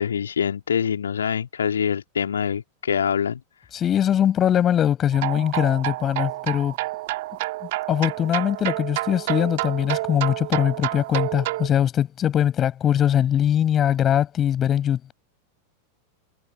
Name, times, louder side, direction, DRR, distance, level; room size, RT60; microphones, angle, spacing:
voice 1, 0.0-3.4, left 7 dB, 70° left, 2.4 m, -25 dB
voice 2, 3.7-6.7 7.9-15.1, left 10 dB, 25° left, 5.6 m, -21 dB
sound 1, 5.1-11.7, right 20 dB, 50° right, 2.1 m, -29 dB
figure-of-eight pair, 90°, 0 cm